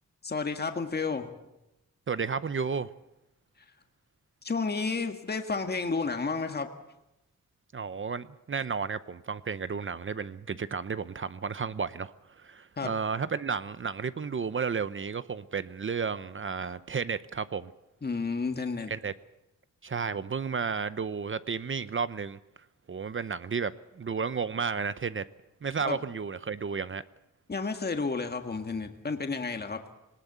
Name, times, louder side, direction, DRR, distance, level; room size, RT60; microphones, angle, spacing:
voice 1, 0.2-1.3 4.4-6.7 12.8-12.9 18.0-18.9 25.8-26.0 27.5-29.8, left 4 dB, 30° left, 6 dB, 1.8 m, -31 dB
voice 2, 2.1-2.9 7.7-17.7 18.9-19.1 19.8-22.4 22.9-25.2 25.6-27.0, right 5 dB, 40° right, 14 dB, 0.8 m, -32 dB
21.0 x 19.5 x 8.1 m, 0.92 s
wide cardioid pair, 105°, 31 cm